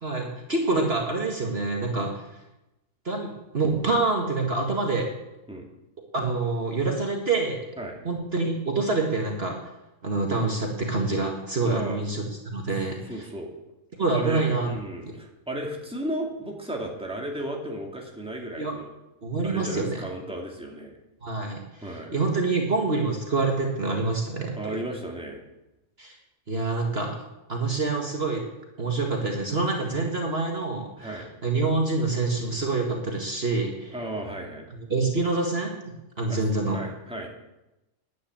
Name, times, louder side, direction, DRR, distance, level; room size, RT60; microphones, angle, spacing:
voice 1, 0.0-2.2 3.1-5.1 6.1-7.7 8.1-9.6 10.0-13.3 14.0-14.7 18.6-18.7 19.2-20.0 21.2-24.5 26.0-26.2 26.5-27.2 27.5-28.4 28.8-33.9 34.9-36.8, right 3 dB, 45° right, 1 dB, 1.9 m, -26 dB
voice 2, 11.6-12.0 13.0-13.5 14.1-18.9 19.4-21.0 21.8-22.1 24.5-25.4 31.0-31.3 33.9-34.7 36.3-36.4 36.7-37.3, right 1 dB, 5° right, -1 dB, 2.5 m, -34 dB
10.5 x 9.2 x 8.8 m, 0.95 s
omnidirectional pair, 1.4 m